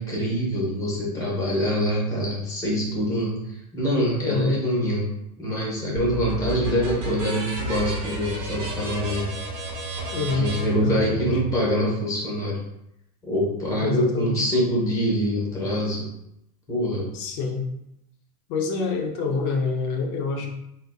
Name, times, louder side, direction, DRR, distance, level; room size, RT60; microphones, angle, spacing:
voice 1, 0.0-5.1 5.4-9.3 10.3-12.6 13.2-16.1 16.7-17.1, equal, 15° left, -4 dB, 1.3 m, -25 dB
voice 2, 4.2-4.6 10.1-11.4 13.8-14.4 17.1-17.7 18.5-20.5, left 4 dB, 40° left, 2 dB, 0.7 m, -26 dB
sound 1, 6.0-11.6, right 3 dB, 45° right, 1.2 m, -32 dB
4.1 x 3.9 x 2.4 m, 0.81 s
supercardioid pair, 170°, 20 cm